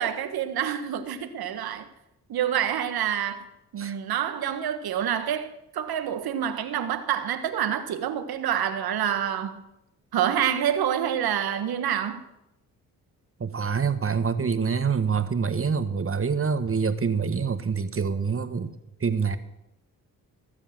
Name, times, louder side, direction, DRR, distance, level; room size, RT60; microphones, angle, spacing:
voice 1, 0.0-1.9 2.3-3.5 3.7-9.6 10.1-12.2, right 9 dB, 70° right, 1.5 m, -27 dB
voice 2, 13.4-18.7 19.0-19.4, right 5 dB, 35° right, 1.4 m, -26 dB
18.5 x 7.2 x 7.5 m
supercardioid pair, 55°, 38 cm